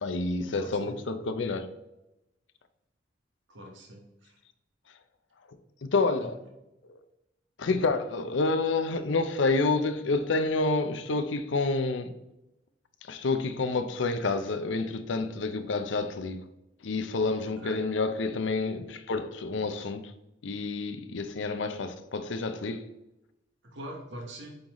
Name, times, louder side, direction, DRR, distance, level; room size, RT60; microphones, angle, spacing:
voice 1, 0.0-1.8 5.5-6.4 6.9-7.0 7.6-12.2 13.0-16.5 16.8-20.1 20.4-22.9, left 3 dB, 80° left, 0.6 m, -29 dB
voice 2, 0.5-1.0 3.5-4.4 5.9-6.3 17.4-17.8 23.6-24.6, right 1 dB, 70° right, 1.2 m, -44 dB
8.7 x 3.9 x 3.0 m
head